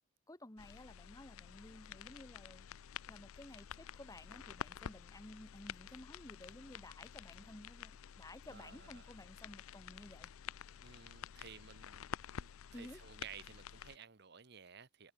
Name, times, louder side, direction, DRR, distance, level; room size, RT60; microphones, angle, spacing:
voice 1, 0.3-2.7 3.1-10.3 12.7-13.0, left 1 dB, 15° left, 1.1 m, -54 dB
sound 1, 0.6-14.0, left 8 dB, 75° left, 0.5 m, -50 dB
voice 2, 8.5-9.1 10.8-15.1, right 7 dB, 50° right, 1.0 m, -55 dB
head